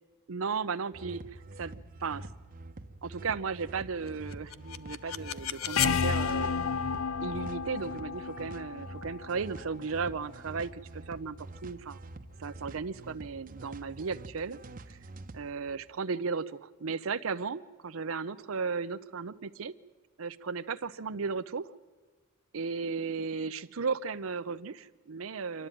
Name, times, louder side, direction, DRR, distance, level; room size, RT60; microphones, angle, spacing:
voice 1, 0.3-2.3 3.0-6.6 7.2-11.4 11.6-12.0 12.4-14.6 14.9-15.0 15.3-19.7 20.2-21.7 22.5-25.7, right 5 dB, 80° right, 12 dB, 0.6 m, -35 dB
sound 1, 0.9-15.5, right 2 dB, 40° right, 0.9 m, -47 dB
sound 2, 4.3-10.2, left 6 dB, 90° left, 0.6 m, -32 dB
26.5 x 12.0 x 9.1 m, 1.4 s
head